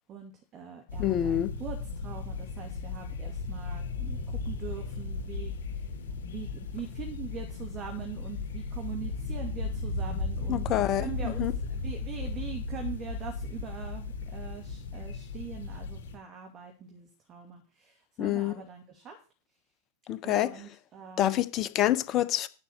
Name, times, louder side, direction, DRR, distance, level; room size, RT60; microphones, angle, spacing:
voice 1, 0.1-5.9 6.2-19.2 20.2-21.4, right 8 dB, 30° right, 2.4 m, -43 dB
sound 1, 0.9-16.2, left 3 dB, 60° left, 2.5 m, -36 dB
voice 2, 1.0-1.5 10.5-11.5 18.2-18.5 20.1-20.5 21.2-22.5, left 13 dB, 35° left, 0.9 m, -27 dB
9.9 x 5.6 x 7.9 m
figure-of-eight pair, 90°, 0 cm